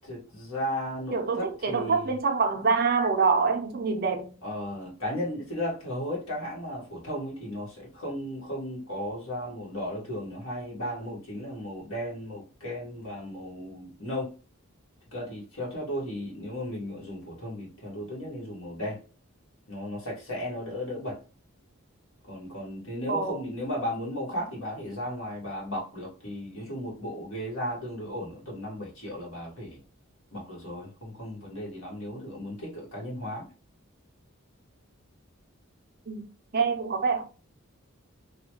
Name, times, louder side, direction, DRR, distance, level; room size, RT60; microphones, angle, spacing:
voice 1, 0.0-2.1 4.4-14.3 15.1-19.0 19.7-21.2 22.2-29.8 30.3-33.5, equal, 75° left, 1.5 m, -35 dB
voice 2, 1.1-4.3 23.1-23.4 36.1-36.2 36.5-37.2, right 5 dB, 45° right, 0.5 m, -25 dB
3.0 x 2.2 x 2.9 m
head